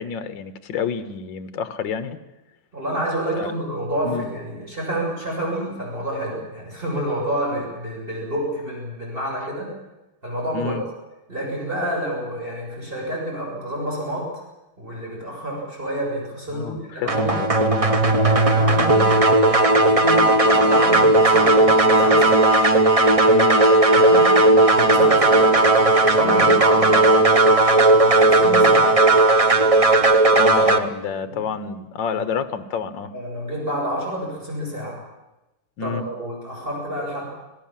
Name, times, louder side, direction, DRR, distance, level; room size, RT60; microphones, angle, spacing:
voice 1, 0.0-2.2 3.4-3.5 4.0-4.3 10.5-10.8 16.5-18.4 23.3-23.6 26.2-26.6 30.3-33.1 35.8-36.0, left 6 dB, 60° left, 12 dB, 1.8 m, -29 dB
voice 2, 2.7-9.7 10.2-10.8 11.3-14.3 14.8-17.5 18.2-22.4 23.9-24.3 24.6-27.1 27.8-29.0 31.3-31.4 33.1-35.0 35.8-37.2, equal, 25° right, -3 dB, 7.4 m, -29 dB
sound 1, 17.1-30.8, right 2 dB, 50° right, 0.4 m, -15 dB
26.5 x 17.5 x 7.5 m, 1.0 s
omnidirectional pair, 2.4 m